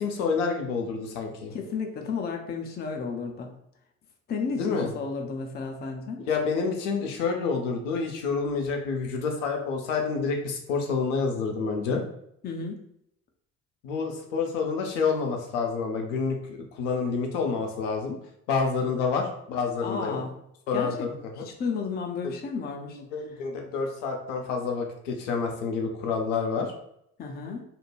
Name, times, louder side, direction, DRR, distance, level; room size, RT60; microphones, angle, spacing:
voice 1, 0.0-1.5 4.6-4.9 6.3-12.0 13.8-16.4 16.8-18.2 18.5-20.2 20.7-21.1 21.4-21.5 22.2-22.3 22.9-26.7, left 5 dB, 70° left, 2 dB, 0.6 m, -28 dB
voice 2, 1.5-3.5 4.3-6.2 12.4-12.8 19.8-20.3 20.7-21.1 21.4-23.0 27.2-27.6, left 5 dB, 25° left, 3 dB, 0.5 m, -33 dB
2.5 x 2.1 x 3.1 m, 0.75 s
figure-of-eight pair, 50°, 40 cm